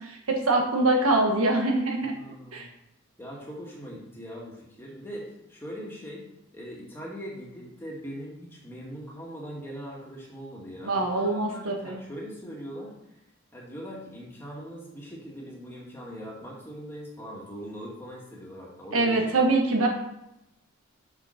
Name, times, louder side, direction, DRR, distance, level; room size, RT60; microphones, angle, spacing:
voice 1, 0.0-2.2 2.5-2.6 10.8-12.0 18.9-19.9, right 2 dB, 85° right, 2 dB, 1.5 m, -24 dB
voice 2, 2.2-2.7 3.2-6.3 6.5-12.9 13.5-19.4, equal, 10° left, -4 dB, 2.0 m, -41 dB
6.4 x 6.1 x 5.9 m, 0.84 s
head